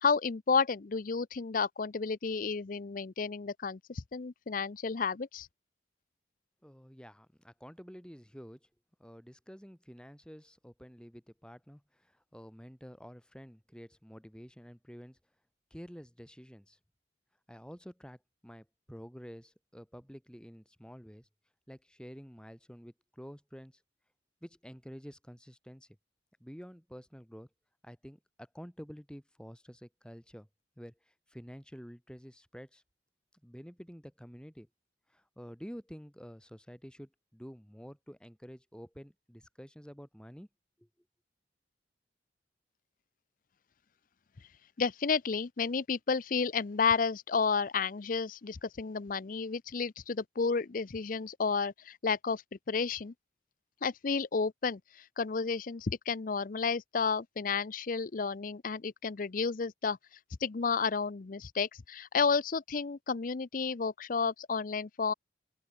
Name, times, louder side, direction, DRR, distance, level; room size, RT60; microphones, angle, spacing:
voice 1, 0.0-5.5 44.8-53.1 53.8-65.1, left 5 dB, 50° left, 0.5 m, -31 dB
voice 2, 6.6-8.6 9.0-15.2 15.7-16.8 17.5-21.3 21.7-23.7 24.4-25.9 26.4-27.5 27.8-30.5 30.8-32.8 33.4-34.7 35.1-40.5 40.8-40.9, equal, 5° left, 6.5 m, -49 dB
open air
head